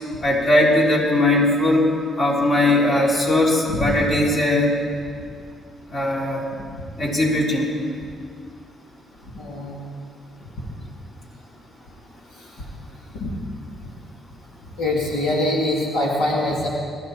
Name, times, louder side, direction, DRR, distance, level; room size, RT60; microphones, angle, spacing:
voice 1, 0.2-1.8 2.2-4.7 5.9-6.4 7.0-7.7, left 1 dB, 40° left, -3 dB, 4.0 m, -19 dB
voice 2, 9.3-9.8 13.1-13.3 14.8-16.7, left 1 dB, 80° left, -4 dB, 3.2 m, -23 dB
22.0 x 14.5 x 4.3 m, 2.2 s
cardioid pair, 90°, 0 cm